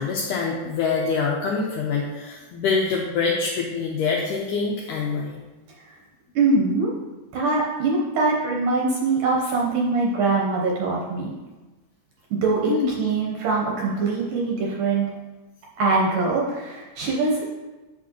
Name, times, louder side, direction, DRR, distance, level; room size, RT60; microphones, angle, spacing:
voice 1, 0.0-5.5 12.7-12.9, left 5 dB, 90° left, -2 dB, 1.8 m, -25 dB
voice 2, 6.4-6.9 7.3-11.3 12.3-15.1 15.8-17.5, right 3 dB, 70° right, -3 dB, 2.0 m, -23 dB
8.2 x 6.3 x 2.9 m, 1.2 s
omnidirectional pair, 4.4 m